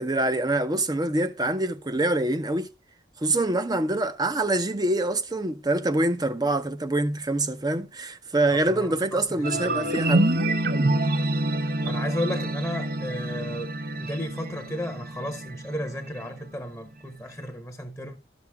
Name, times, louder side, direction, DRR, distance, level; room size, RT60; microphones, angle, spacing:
voice 1, 0.0-2.7 3.2-10.3, right 2 dB, 20° right, 0.6 m, -25 dB
voice 2, 8.5-10.1 11.8-13.7 14.0-18.2, left 1 dB, 5° left, 0.8 m, -34 dB
sound 1, 9.4-16.5, right 1 dB, 55° right, 0.7 m, -27 dB
12.0 x 6.2 x 3.4 m
head